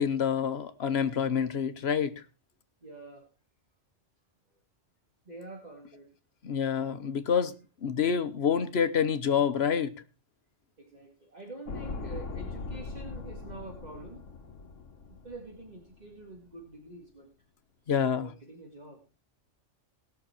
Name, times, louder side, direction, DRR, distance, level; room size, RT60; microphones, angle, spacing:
voice 1, 0.0-2.2 6.4-7.5 7.8-9.9 17.9-18.3, left 7 dB, 60° left, 1.2 m, -27 dB
voice 2, 2.8-3.3 5.3-6.1 10.8-14.2 15.1-17.3 18.1-19.0, right 2 dB, 35° right, 2.1 m, -46 dB
sound 1, 11.7-15.9 16.2-16.3, left 3 dB, 85° left, 1.5 m, -40 dB
19.0 x 6.6 x 4.4 m
omnidirectional pair, 1.3 m